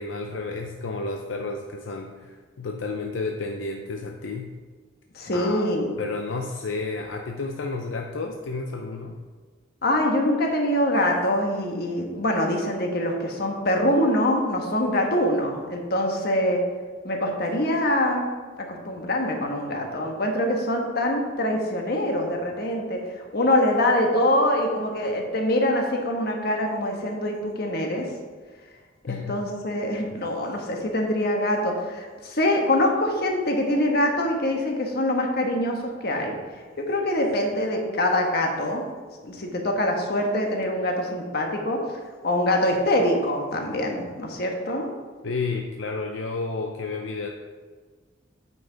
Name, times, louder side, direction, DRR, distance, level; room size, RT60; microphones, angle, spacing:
voice 1, 0.0-4.5 5.3-9.2 29.1-29.4 45.2-47.3, left 3 dB, 75° left, 2 dB, 0.6 m, -31 dB
voice 2, 5.1-6.0 9.8-16.6 17.0-18.2 18.6-28.1 29.1-36.4 36.8-38.8 39.2-41.8 42.2-44.9, left 1 dB, 55° left, 2 dB, 1.3 m, -24 dB
9.0 x 5.6 x 3.9 m, 1.5 s
head